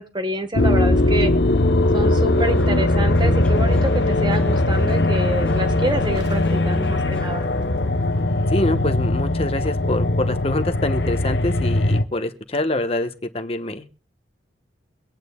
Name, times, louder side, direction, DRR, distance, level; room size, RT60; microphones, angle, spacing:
voice 1, 0.0-1.3 1.9-7.5, right 1 dB, 25° right, 8 dB, 1.4 m, -27 dB
sound 1, 0.5-12.0, left 2 dB, 75° left, 0.9 m, -20 dB
sound 2, 2.6-11.0 11.3-12.0, equal, 5° left, 1.3 m, -39 dB
Fire, 5.5-7.9, right 1 dB, 70° right, 2.3 m, -36 dB
voice 2, 8.5-14.0, left 1 dB, 35° left, 8 dB, 1.1 m, -25 dB
24.0 x 9.0 x 2.3 m, 0.36 s
head